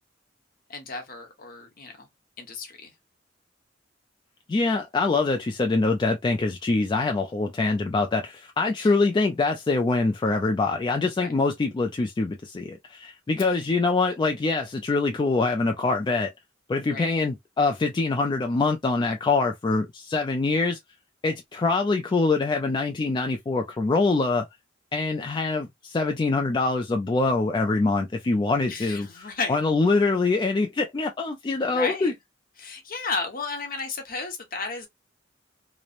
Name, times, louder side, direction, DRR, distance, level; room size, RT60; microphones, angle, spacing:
voice 1, 0.7-2.1 2.4-2.9 8.8-8.9 11.2-11.3 16.9-17.1 28.7-29.6 31.6-32.1 32.6-34.9, left 4 dB, 50° left, 0.9 m, -33 dB
voice 2, 4.5-16.3 16.7-20.8 21.2-24.5 24.9-32.1, left 3 dB, 25° left, 0.3 m, -24 dB
3.0 x 2.0 x 2.4 m
head